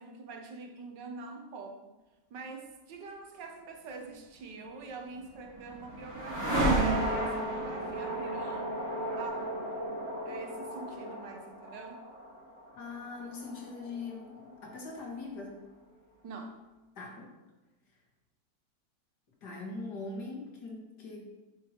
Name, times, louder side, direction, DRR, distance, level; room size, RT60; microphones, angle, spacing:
voice 1, 0.0-1.9 2.3-8.7 9.2-10.0 10.2-12.1 16.2-16.6, right 4 dB, 75° right, 4 dB, 1.6 m, -45 dB
sound 1, 5.0-15.1, right 1 dB, 35° left, 2.8 m, -34 dB
voice 2, 12.7-15.6 17.0-17.3 19.4-21.3, left 3 dB, 65° left, 0 dB, 2.3 m, -41 dB
10.0 x 5.6 x 4.4 m, 1.1 s
omnidirectional pair, 2.0 m